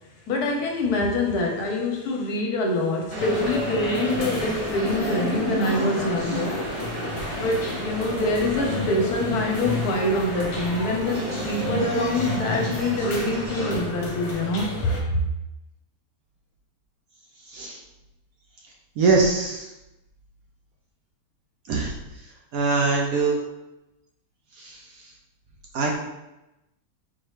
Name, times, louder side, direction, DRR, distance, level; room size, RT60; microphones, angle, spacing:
voice 1, 0.3-6.7 7.4-15.2, left 1 dB, 70° left, 1 dB, 1.1 m, -25 dB
sound 1, 3.1-13.8, right 1 dB, 40° right, 0.7 m, -34 dB
sound 2, 3.2-15.0, left 2 dB, 45° left, 1.1 m, -31 dB
voice 2, 19.0-19.7 21.7-21.9 22.5-23.4 24.6-24.8 25.7-25.9, right 4 dB, 70° right, -1 dB, 0.9 m, -22 dB
4.2 x 3.1 x 3.2 m, 0.95 s
omnidirectional pair, 1.9 m